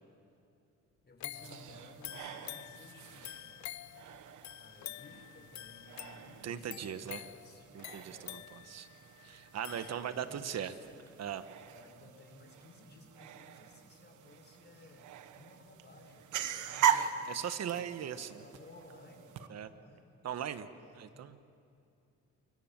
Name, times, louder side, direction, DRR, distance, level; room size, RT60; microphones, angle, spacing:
voice 1, 1.0-3.5 4.6-7.7 8.1-8.4 9.6-10.9 11.7-17.2 17.9-20.2 20.8-21.3, left 3 dB, 35° left, 3 dB, 5.3 m, -57 dB
sound 1, 1.2-10.5 10.9-11.0, left 14 dB, 65° left, 0.6 m, -48 dB
sound 2, 1.3-19.5, right 9 dB, 80° right, 1.3 m, -40 dB
voice 2, 6.4-7.2 7.7-8.9 9.2-10.7 11.2-11.4 17.3-18.4 19.5-19.7 20.2-20.7 20.9-21.4, right 9 dB, 60° right, 11 dB, 1.3 m, -39 dB
28.5 x 24.5 x 7.5 m, 2.6 s
cardioid pair, 90°, 30 cm